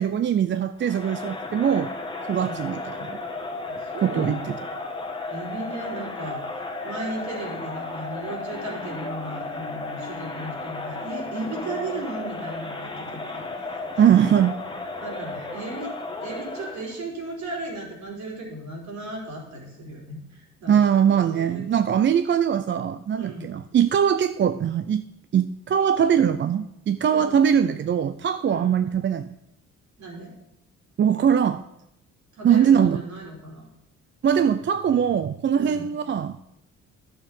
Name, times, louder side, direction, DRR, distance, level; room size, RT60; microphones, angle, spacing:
voice 1, 0.0-1.9 2.3-3.2 4.0-4.6 14.0-14.5 20.7-25.0 25.3-29.4 31.0-31.6 32.4-33.0 34.2-36.6, right 8 dB, 40° right, 11 dB, 0.5 m, -21 dB
Crowd, 0.8-17.0, left 3 dB, 15° left, 1.5 m, -34 dB
voice 2, 3.7-4.4 5.3-6.4 6.8-14.0 15.0-15.9 16.2-20.8 21.3-21.6 23.2-23.5 27.0-27.3 28.5-28.7 30.0-30.3 32.3-33.7 35.5-35.9, right 2 dB, 65° right, -1 dB, 4.2 m, -36 dB
11.5 x 6.8 x 5.4 m, 0.82 s
cardioid pair, 90°, 30 cm